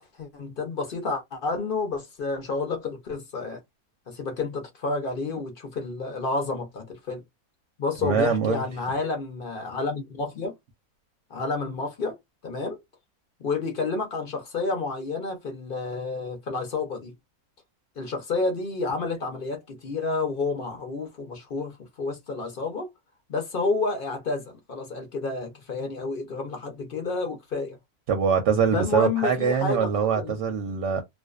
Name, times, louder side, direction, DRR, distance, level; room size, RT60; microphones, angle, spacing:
voice 1, 0.1-3.6 4.1-7.2 7.8-10.5 11.3-12.2 12.4-12.8 13.4-17.1 18.0-22.9 23.3-27.8 28.7-29.9 30.2-30.3, left 3 dB, 55° left, 0.6 m, -30 dB
voice 2, 8.0-8.6 28.1-31.0, right 6 dB, 65° right, 0.8 m, -23 dB
2.5 x 2.2 x 2.3 m
omnidirectional pair, 1.6 m